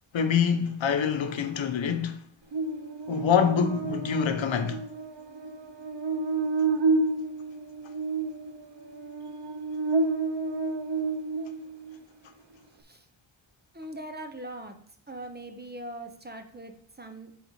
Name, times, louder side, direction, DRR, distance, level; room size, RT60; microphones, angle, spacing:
voice 1, 0.1-2.2 3.1-4.8, left 7 dB, 75° left, 1.0 m, -25 dB
Buzz, 2.5-12.0, right 3 dB, 65° right, 0.9 m, -30 dB
voice 2, 13.7-14.8 15.1-17.3, right 1 dB, 20° right, 0.9 m, -41 dB
8.3 x 3.9 x 4.8 m
wide cardioid pair, 110°, 46 cm